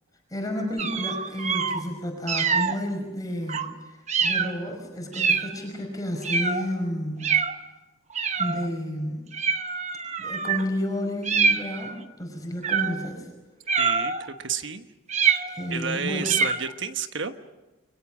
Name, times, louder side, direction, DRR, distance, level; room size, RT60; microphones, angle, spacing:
voice 1, 0.3-7.4 8.4-9.3 10.2-13.3 15.5-16.4, equal, 15° left, 1 dB, 5.0 m, -31 dB
sound 1, 0.8-1.8 2.3-2.8 3.5-3.7 4.1-4.5 5.1-5.6 6.2-6.7 7.2-7.6 8.1-8.7 9.3-10.6 11.2-12.0 12.6-13.1 13.7-14.3 15.1-15.7 16.2-16.7, right 5 dB, 35° right, 1.0 m, -25 dB
voice 2, 13.7-14.9 15.7-17.3, right 7 dB, 60° right, 8 dB, 1.3 m, -30 dB
30.0 x 23.0 x 6.2 m, 1.1 s
head